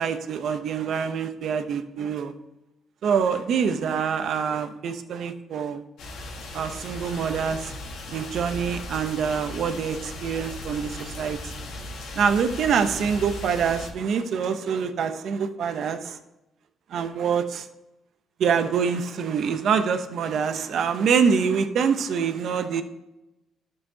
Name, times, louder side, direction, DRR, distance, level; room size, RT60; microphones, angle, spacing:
voice 1, 0.0-2.3 3.0-5.8 6.5-7.7 8.1-11.5 12.1-16.2 16.9-17.7 18.4-22.8, right 6 dB, 70° right, 8 dB, 0.8 m, -25 dB
sound 1, 6.0-13.9, left 2 dB, 85° left, 1.6 m, -37 dB
12.5 x 6.7 x 2.9 m, 0.94 s
cardioid pair, 90°, 0 cm